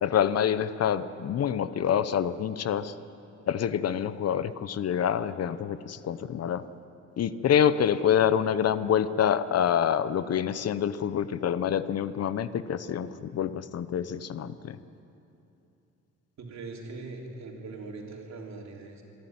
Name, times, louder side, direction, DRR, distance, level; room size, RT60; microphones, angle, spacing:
voice 1, 0.0-2.9 3.5-6.6 7.2-14.8, left 9 dB, 55° left, 14 dB, 0.8 m, -26 dB
voice 2, 16.4-19.0, right 3 dB, 65° right, 0 dB, 3.5 m, -41 dB
25.5 x 11.5 x 9.5 m, 2.8 s
cardioid pair, 90°, 30 cm